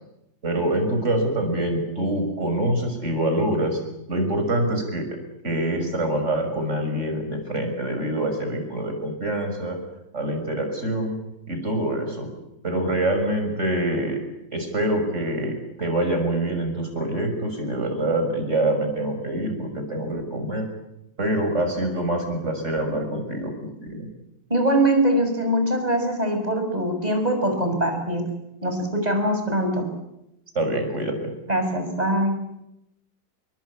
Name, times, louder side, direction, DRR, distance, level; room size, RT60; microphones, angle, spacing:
voice 1, 0.4-3.8 4.1-5.1 5.4-9.8 10.1-11.2 11.5-12.3 12.6-14.2 14.5-20.7 21.2-23.5 23.8-24.1 30.5-31.3, right 1 dB, 35° right, 5 dB, 6.7 m, -25 dB
voice 2, 24.5-28.3 28.6-29.8 31.5-32.4, right 1 dB, 20° right, 5 dB, 6.6 m, -22 dB
28.5 x 22.5 x 8.7 m, 0.86 s
omnidirectional pair, 2.1 m